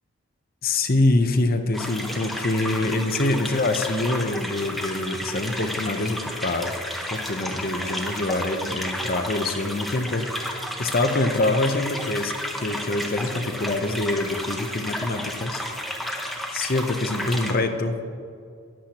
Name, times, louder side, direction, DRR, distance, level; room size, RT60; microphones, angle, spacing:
voice 1, 0.6-6.8 7.1-10.2 10.8-12.3 12.6-15.6 15.9-17.9, left 2 dB, 45° left, 7 dB, 0.7 m, -25 dB
sound 1, 1.7-17.5, equal, ahead, 0.8 m, -32 dB
13.5 x 10.0 x 2.9 m, 2.3 s
head